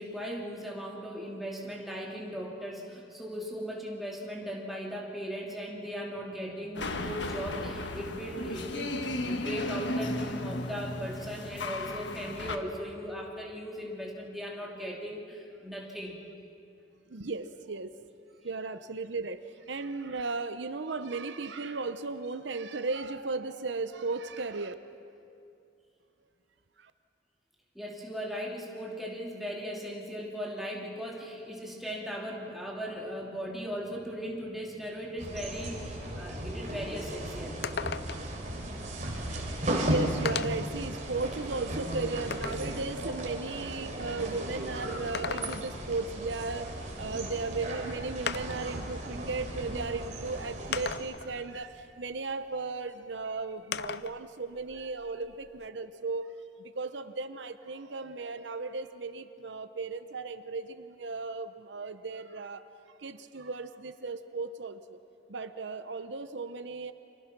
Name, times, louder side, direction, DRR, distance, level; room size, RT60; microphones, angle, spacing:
voice 1, 0.0-16.2 27.7-37.6, equal, ahead, -3 dB, 3.0 m, -38 dB
sound 1, 6.7-12.6, left 2 dB, 75° left, 1.4 m, -35 dB
voice 2, 17.1-17.9 18.4-19.4 19.7-24.7 26.8-26.9 39.1-46.7 47.0-56.3 56.6-62.7 63.0-65.0 65.3-66.9, right 3 dB, 75° right, 11 dB, 0.8 m, -36 dB
sound 2, 35.2-51.0, right 1 dB, 40° right, 3.6 m, -36 dB
sound 3, 36.7-36.8 37.1-37.2 37.6-38.4 39.4-39.5 40.3-40.7 41.3-42.7 44.9-45.9 47.4-47.5 48.3-48.7 49.7-49.8 50.7-51.3 53.7-54.2 54.6-55.7, left 7 dB, 60° left, 0.5 m, -36 dB
30.0 x 24.5 x 6.0 m, 2.6 s
head